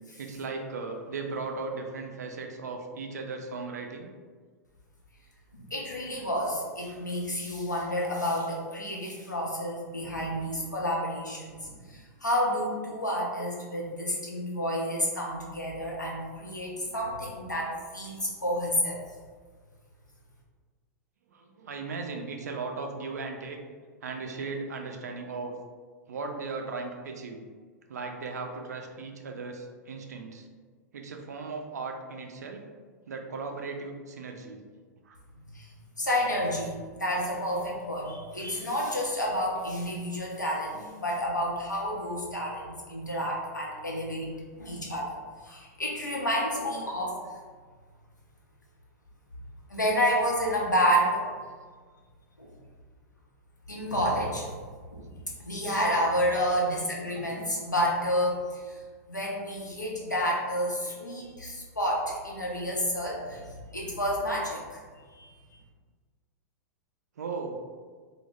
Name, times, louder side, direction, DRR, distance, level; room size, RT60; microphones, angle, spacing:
voice 1, 0.2-4.1 21.3-23.6 24.0-25.5 26.1-27.4 27.9-30.5 30.9-32.6 33.1-34.6 35.0-35.2 67.2-67.7, right 4 dB, 65° right, 3 dB, 0.3 m, -37 dB
voice 2, 5.5-19.0 35.5-35.7 36.0-44.3 44.6-45.2 45.4-47.2 49.7-51.3 52.4-52.5 53.7-54.5 54.9-55.1 55.4-58.8 59.1-64.8 65.1-65.3, equal, 85° left, -3 dB, 0.6 m, -30 dB
2.1 x 2.0 x 3.3 m, 1.5 s
figure-of-eight pair, 95°, 9 cm